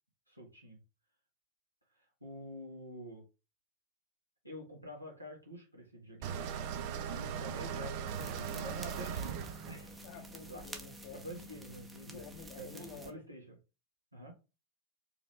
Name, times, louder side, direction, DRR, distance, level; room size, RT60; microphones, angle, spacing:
voice 1, 0.3-0.8 2.0-3.2 4.4-6.4 7.1-9.9 10.5-10.6 11.1-12.2 12.6-13.6 14.1-14.3, equal, 90° right, 1.7 m, -47 dB
sound 1, 6.2-11.2, right 8 dB, 45° right, 0.5 m, -40 dB
sound 2, 8.1-13.1, equal, 10° right, 0.8 m, -50 dB
voice 2, 10.0-11.2 12.0-13.2, left 5 dB, 45° left, 0.9 m, -51 dB
4.6 x 3.0 x 3.3 m
figure-of-eight pair, 90°, 0 cm